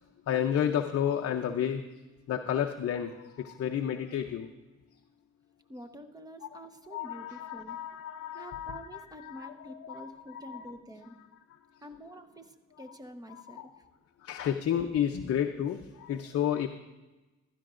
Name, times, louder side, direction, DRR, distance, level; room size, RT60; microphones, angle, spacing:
voice 1, 0.3-2.0 2.3-4.5 6.4-6.6 6.9-8.8 9.2-10.6 13.3-13.7 14.2-16.7, left 9 dB, 50° left, 5 dB, 0.6 m, -31 dB
voice 2, 5.7-7.8 8.3-11.2 11.8-13.8, equal, 10° right, 7 dB, 1.0 m, -47 dB
15.5 x 12.5 x 2.5 m, 1.1 s
cardioid pair, 90°, 30 cm